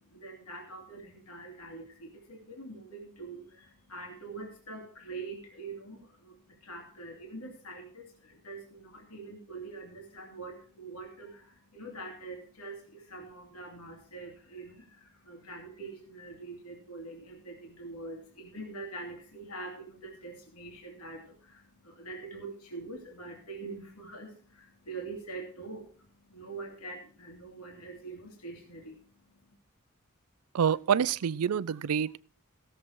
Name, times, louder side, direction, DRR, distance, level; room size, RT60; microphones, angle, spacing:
voice 1, 0.0-29.5, right 3 dB, 85° left, 2.6 m, -44 dB
voice 2, 30.5-32.2, right 7 dB, 80° right, 0.4 m, -27 dB
16.0 x 7.3 x 4.5 m
head